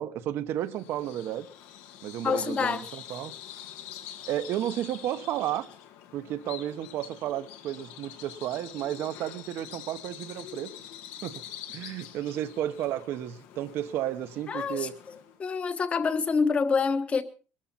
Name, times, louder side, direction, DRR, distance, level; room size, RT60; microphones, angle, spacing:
voice 1, 0.0-1.5 2.0-3.3 4.3-5.7 6.1-10.7 11.2-11.4 11.7-15.0, right 12 dB, 55° right, 1.0 m, -32 dB
Bird vocalization bird call bird song, 0.6-15.4, left 10 dB, 85° left, 2.1 m, -46 dB
voice 2, 2.2-3.0 14.5-14.9 15.4-17.2, left 5 dB, 25° left, 1.2 m, -26 dB
21.0 x 13.5 x 4.2 m
cardioid pair, 160°, 5 cm